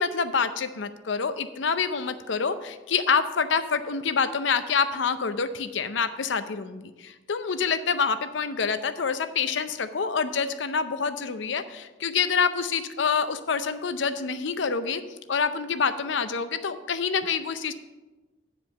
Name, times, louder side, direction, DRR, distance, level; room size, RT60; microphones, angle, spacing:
voice 1, 0.0-15.0 15.3-17.7, left 5 dB, 70° left, 11 dB, 0.6 m, -27 dB
8.9 x 5.0 x 7.0 m, 1.2 s
head